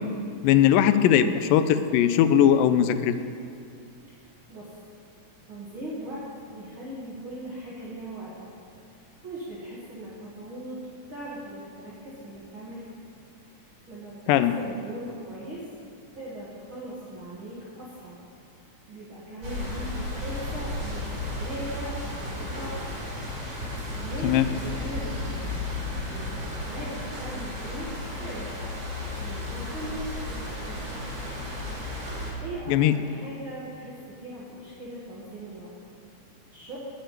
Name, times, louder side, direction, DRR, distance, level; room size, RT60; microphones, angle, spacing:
voice 1, 0.4-3.2 14.3-14.5 24.2-24.5 32.7-32.9, left 10 dB, 90° left, 11 dB, 2.3 m, -19 dB
voice 2, 4.1-4.7 5.5-8.5 8.9-12.9 13.5-15.6 16.1-18.2 18.9-22.8 23.6-27.9 28.2-28.6 29.2-31.2 31.4-31.6 32.4-35.7 36.5-36.8, right 1 dB, 45° right, -8 dB, 2.1 m, -40 dB
sound 1, 19.4-32.3, left 2 dB, 25° right, 3.6 m, -34 dB
9.2 x 7.3 x 9.1 m, 2.4 s
omnidirectional pair, 3.9 m